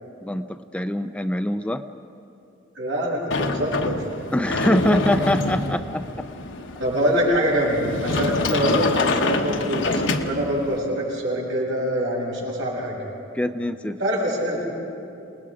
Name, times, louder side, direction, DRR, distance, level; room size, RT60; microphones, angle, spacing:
voice 1, 0.2-1.8 4.3-6.2 13.3-14.0, left 1 dB, 5° left, 9 dB, 0.4 m, -23 dB
voice 2, 2.8-4.0 6.8-13.0 14.0-14.6, equal, 70° right, -4 dB, 6.8 m, -24 dB
Sliding door, 3.3-10.8, left 3 dB, 65° left, 1.1 m, -26 dB
28.5 x 20.0 x 5.0 m, 2.8 s
head